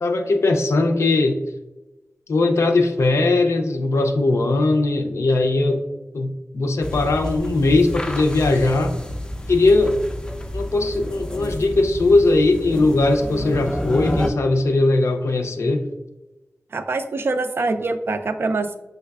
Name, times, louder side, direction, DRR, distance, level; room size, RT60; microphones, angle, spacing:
voice 1, 0.0-1.4 2.3-5.8 6.1-8.9 9.5-10.0 10.5-15.8, left 2 dB, 85° left, 5 dB, 0.5 m, -19 dB
sound 1, 6.8-14.3, left 1 dB, 15° left, 0.4 m, -29 dB
voice 2, 16.7-18.8, right 3 dB, 55° right, 8 dB, 0.3 m, -24 dB
5.5 x 3.2 x 2.3 m, 1.0 s
wide cardioid pair, 80°, 5 cm